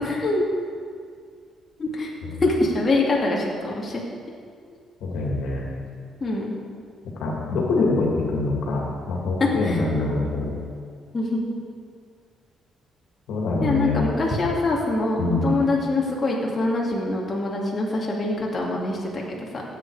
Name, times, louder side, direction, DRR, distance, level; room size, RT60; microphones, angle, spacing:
voice 1, 0.0-0.4 1.8-2.1 2.4-4.0 4.7-4.8 6.2-6.6 9.6-9.8 11.1-11.4 13.6-19.4, left 2 dB, 35° left, -3 dB, 2.6 m, -24 dB
voice 2, 5.0-5.6 7.2-10.6 13.3-14.0 15.2-15.5, left 3 dB, 80° left, -1 dB, 2.4 m, -24 dB
15.5 x 8.5 x 5.0 m, 2.1 s
cardioid pair, 90°, 0 cm